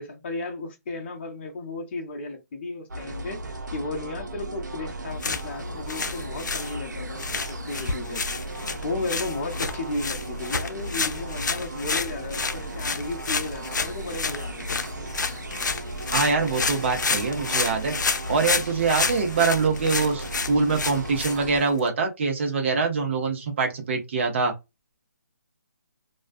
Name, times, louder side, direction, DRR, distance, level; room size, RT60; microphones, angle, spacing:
voice 1, 0.0-8.2 8.5-14.8, left 2 dB, 35° left, 0.7 m, -34 dB
sound 1, 2.9-21.6, right 1 dB, 85° right, 0.6 m, -36 dB
sound 2, 5.1-21.9, left 4 dB, 90° left, 0.4 m, -30 dB
voice 2, 16.1-18.0 18.3-24.5, right 4 dB, 40° right, 0.7 m, -24 dB
2.3 x 2.2 x 2.5 m
hypercardioid pair, 160°, 10 cm